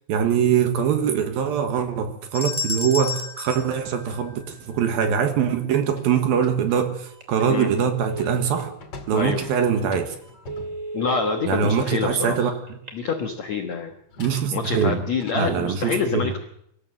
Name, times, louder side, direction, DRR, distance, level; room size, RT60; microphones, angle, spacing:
voice 1, 0.1-8.7 9.1-10.2 11.5-12.6 14.2-15.0 15.3-16.2, right 7 dB, 65° right, 2.8 m, -23 dB
sound 1, 2.3-4.7, left 4 dB, 5° left, 0.6 m, -31 dB
sound 2, 4.0-6.9 7.4-11.8 13.5-13.6 14.1-15.3, left 3 dB, 45° left, 2.2 m, -45 dB
Telephone, 7.1-7.3 7.6-8.7 9.2-9.4 9.8-9.9 10.3-11.5 12.7-13.3, right 3 dB, 20° right, 2.6 m, -34 dB
voice 2, 9.1-9.4 10.9-12.5 12.9-13.9 14.5-16.4, left 5 dB, 70° left, 1.6 m, -26 dB
24.5 x 14.0 x 7.6 m
omnidirectional pair, 5.2 m